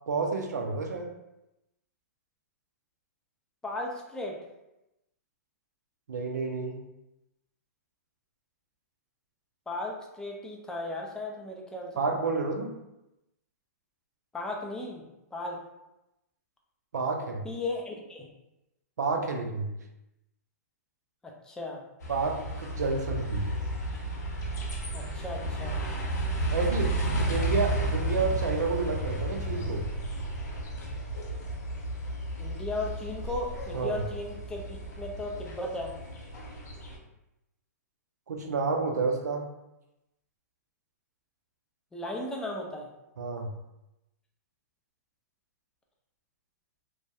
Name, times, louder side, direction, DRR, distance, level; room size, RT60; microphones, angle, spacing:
voice 1, 0.1-1.1 6.1-6.8 12.0-12.7 16.9-17.5 19.0-19.7 22.1-23.5 26.5-26.9 27.3-29.9 33.7-34.0 38.3-39.4 43.2-43.6, right 4 dB, 85° right, 3 dB, 0.4 m, -30 dB
voice 2, 3.6-4.4 9.7-11.9 14.3-15.0 15.3-15.6 17.4-18.3 21.4-21.8 24.9-25.8 32.4-35.9 41.9-42.9, left 2 dB, 5° left, -1 dB, 0.3 m, -36 dB
sound 1, 22.0-37.0, right 1 dB, 80° left, 0.7 m, -33 dB
2.6 x 2.1 x 2.2 m, 0.92 s
hypercardioid pair, 130°, 9 cm